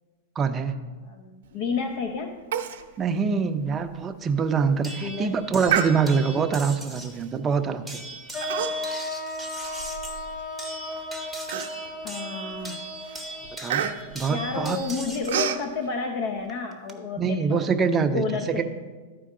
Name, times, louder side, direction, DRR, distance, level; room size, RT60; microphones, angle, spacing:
voice 1, 0.4-0.8 3.0-8.0 13.6-14.8 17.2-18.6, right 5 dB, 20° right, 7 dB, 0.6 m, -25 dB
voice 2, 1.0-2.4 5.0-5.4 12.0-12.9 14.3-18.6, left 4 dB, 55° left, 4 dB, 0.7 m, -31 dB
Human voice, 2.5-2.8 3.2-3.3 3.8-3.9 4.4-4.7 5.7-6.4 7.1-7.4 8.4-9.0 9.4-10.4 10.9-11.0 11.5-12.1 12.5-12.8 13.0-15.6, right 9 dB, 75° right, 0.7 m, -29 dB
sound 1, 4.8-7.2 7.9-15.4 16.5-16.9, right 2 dB, ahead, 0.9 m, -39 dB
sound 2, 8.3-14.4, left 2 dB, 25° left, 1.3 m, -36 dB
13.5 x 4.5 x 3.8 m, 1.4 s
supercardioid pair, 140°, 0 cm